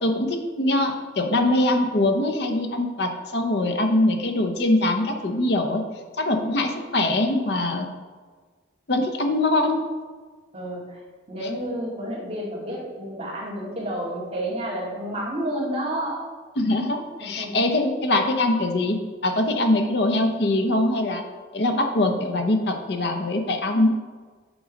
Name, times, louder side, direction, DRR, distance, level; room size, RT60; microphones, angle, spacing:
voice 1, 0.0-5.8 6.2-7.9 8.9-9.8 16.6-19.0 19.2-21.2 21.5-23.9, left 2 dB, 60° left, 4 dB, 0.8 m, -22 dB
voice 2, 10.5-11.0 11.3-16.3 17.2-17.7, right 1 dB, 30° right, -7 dB, 2.3 m, -30 dB
8.0 x 3.9 x 5.2 m, 1.5 s
head